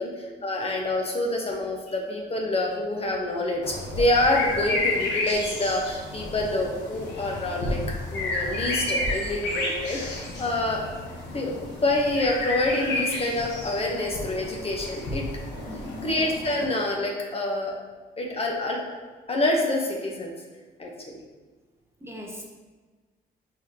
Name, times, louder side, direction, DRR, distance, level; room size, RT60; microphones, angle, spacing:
voice 1, 0.0-7.8 8.1-10.8 11.3-15.3 16.0-17.7 18.2-18.8 19.3-20.3 20.8-21.2, left 1 dB, 35° left, 0 dB, 0.9 m, -27 dB
sound 1, 3.6-16.7, left 2 dB, 80° left, 1.0 m, -31 dB
voice 2, 15.7-16.2 22.0-22.4, left 1 dB, 15° right, -1 dB, 0.7 m, -39 dB
4.8 x 3.8 x 2.8 m, 1.3 s
cardioid pair, 90°, 18 cm